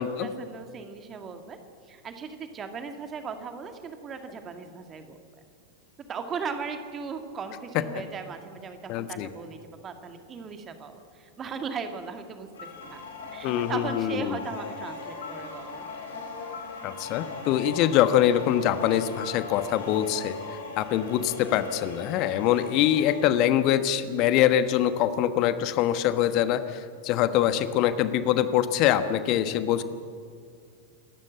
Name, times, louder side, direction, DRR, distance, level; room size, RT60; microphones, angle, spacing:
voice 1, 0.0-1.6 1.9-5.2 6.1-13.0 13.3-16.1, right 5 dB, 25° right, 6 dB, 2.1 m, -38 dB
voice 2, 8.9-9.3 13.4-14.4 16.8-20.4 20.8-29.8, left 11 dB, 40° left, 11 dB, 1.3 m, -24 dB
sound 1, 12.5-23.2, left 4 dB, 65° left, 4.6 m, -39 dB
28.0 x 13.0 x 7.7 m, 2.2 s
figure-of-eight pair, 90°, 0 cm